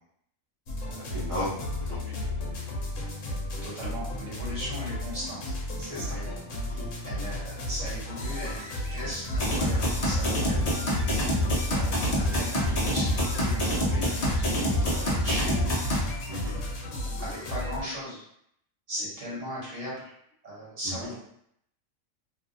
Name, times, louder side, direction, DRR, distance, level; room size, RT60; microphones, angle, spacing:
sound 1, 0.7-17.8, left 1 dB, 70° left, 1.0 m, -34 dB
voice 1, 0.8-2.1 5.8-6.2 6.7-6.9 9.9-10.0 16.3-16.5 20.8-20.9, left 1 dB, 30° right, -8 dB, 0.9 m, -36 dB
voice 2, 3.6-5.6 6.0-6.4 6.6-15.7 17.2-18.2 18.9-20.1 20.4-21.2, equal, 65° right, -7 dB, 1.5 m, -38 dB
sound 2, 9.3-16.0, equal, 45° left, 0.5 m, -26 dB
2.7 x 2.3 x 2.6 m, 0.71 s
omnidirectional pair, 1.4 m